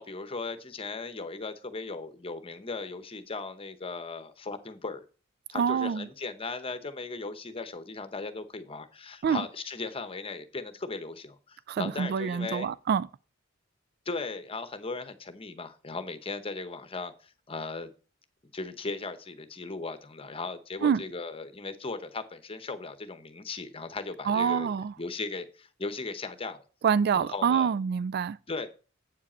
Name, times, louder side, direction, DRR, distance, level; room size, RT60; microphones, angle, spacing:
voice 1, 0.0-5.0 5.5-12.7 14.1-17.9 18.5-24.7 25.0-26.6 27.1-27.7 28.5-28.7, left 3 dB, 30° left, 0.9 m, -37 dB
voice 2, 5.5-6.1 9.2-9.4 11.7-13.1 20.8-21.0 24.3-24.9 26.8-28.4, right 7 dB, 55° right, 0.3 m, -26 dB
8.2 x 7.4 x 4.3 m
head